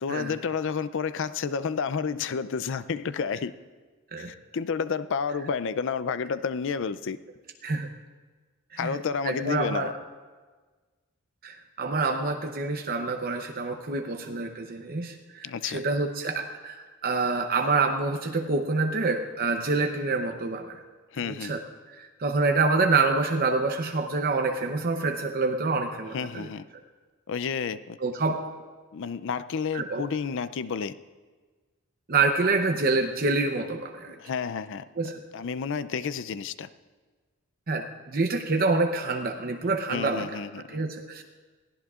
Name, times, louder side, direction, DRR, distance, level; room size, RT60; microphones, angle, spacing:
voice 1, 0.0-3.5 4.2-7.2 8.8-9.9 15.4-15.8 21.1-21.5 26.1-26.6 27.3-28.0 28.9-31.0 34.2-34.8 35.3-36.7 39.9-40.8, left 6 dB, 60° left, 14 dB, 0.4 m, -30 dB
voice 2, 9.2-9.9 11.4-20.8 21.2-21.6 21.9-26.5 28.0-28.5 29.7-30.0 32.1-34.2 35.0-35.2 37.7-40.4 40.7-41.2, right 3 dB, 45° right, 4 dB, 0.7 m, -27 dB
21.5 x 16.0 x 2.4 m, 1.4 s
head